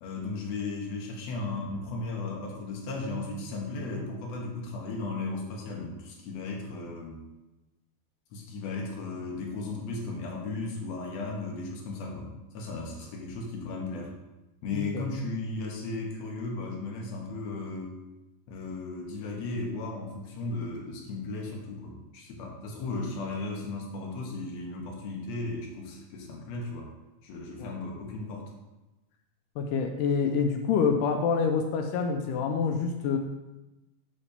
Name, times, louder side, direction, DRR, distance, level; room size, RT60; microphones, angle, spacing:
voice 1, 0.0-7.2 8.3-12.3 12.5-14.1 14.6-18.0 18.5-26.9 27.2-28.5, left 3 dB, 60° left, 0 dB, 2.0 m, -35 dB
voice 2, 29.6-33.2, left 5 dB, 90° left, 5 dB, 1.8 m, -26 dB
7.3 x 4.1 x 6.6 m, 1.0 s
omnidirectional pair, 4.4 m